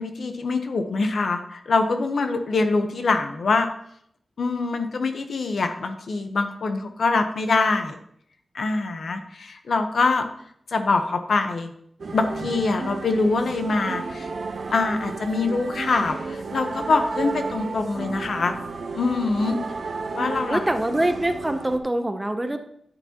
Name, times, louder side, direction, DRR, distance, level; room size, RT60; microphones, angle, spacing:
voice 1, 0.0-3.7 4.4-8.0 8.5-10.3 10.7-11.7 12.1-14.3 14.7-18.5 18.9-19.6 20.1-20.6, left 3 dB, 70° left, 7 dB, 0.9 m, -24 dB
sound 1, 12.0-21.8, right 4 dB, 55° right, 0.9 m, -32 dB
voice 2, 20.5-22.6, right 1 dB, 15° right, 7 dB, 0.7 m, -24 dB
11.0 x 8.9 x 2.9 m, 0.68 s
wide cardioid pair, 155°, 0 cm